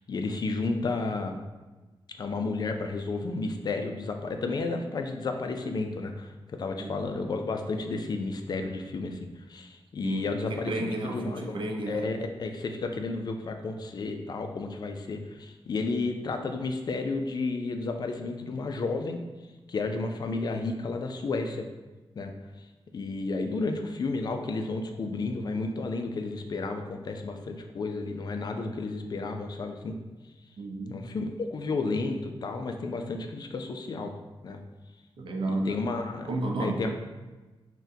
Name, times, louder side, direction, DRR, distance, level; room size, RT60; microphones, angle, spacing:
voice 1, 0.1-1.4 2.2-11.6 11.9-19.2 19.7-21.7 22.2-22.3 22.9-30.0 30.9-34.1 34.4-34.6 35.5-36.3 36.6-36.9, left 3 dB, 50° left, 5 dB, 0.3 m, -32 dB
voice 2, 10.0-12.1 30.6-31.0 35.2-35.8 36.2-36.9, right 2 dB, 65° right, 2 dB, 0.5 m, -32 dB
6.0 x 2.2 x 2.7 m, 1.2 s
wide cardioid pair, 140°, 9 cm